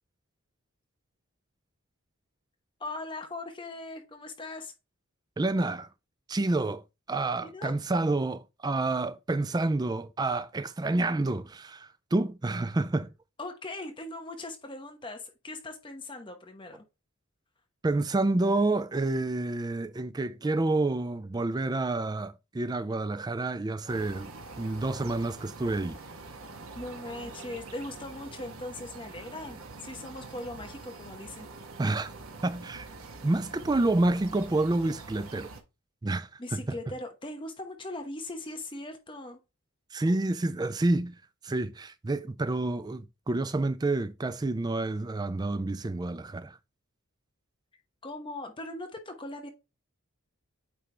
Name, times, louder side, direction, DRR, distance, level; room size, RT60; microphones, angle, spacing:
voice 1, 2.8-4.7 7.4-7.8 13.4-16.8 26.7-31.5 36.4-39.4 48.0-49.5, left 2 dB, 20° left, 0.9 m, -40 dB
voice 2, 5.4-5.9 6.3-13.1 17.8-24.3 24.6-26.0 31.8-32.1 32.4-32.9 33.2-35.5 36.0-36.6 39.9-41.2 41.4-46.6, right 2 dB, 20° right, 0.3 m, -29 dB
sound 1, 23.9-35.6, right 3 dB, 75° right, 1.1 m, -45 dB
8.7 x 3.3 x 3.3 m
head